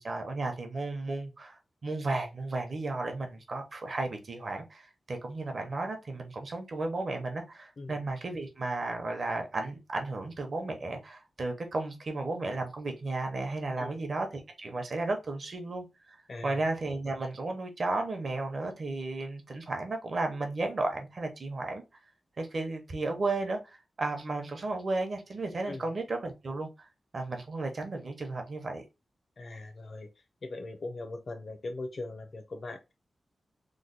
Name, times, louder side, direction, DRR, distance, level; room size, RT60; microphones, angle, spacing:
voice 1, 0.0-21.8 22.4-26.9 27.1-28.8, right 2 dB, 50° right, 0.8 m, -34 dB
voice 2, 16.3-16.6 25.7-25.9 29.4-30.1 30.4-32.9, left 2 dB, 50° left, 0.7 m, -40 dB
3.1 x 2.2 x 3.8 m
wide cardioid pair, 140°, 0 cm